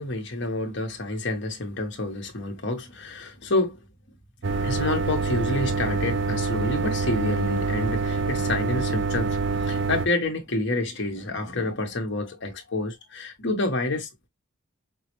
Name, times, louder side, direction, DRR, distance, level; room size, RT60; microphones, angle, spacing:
voice 1, 0.0-3.8 4.6-14.1, left 2 dB, 60° left, 1.4 m, -28 dB
sound 1, 4.4-10.1, right 4 dB, 60° right, 0.6 m, -26 dB
5.8 x 2.1 x 3.0 m
head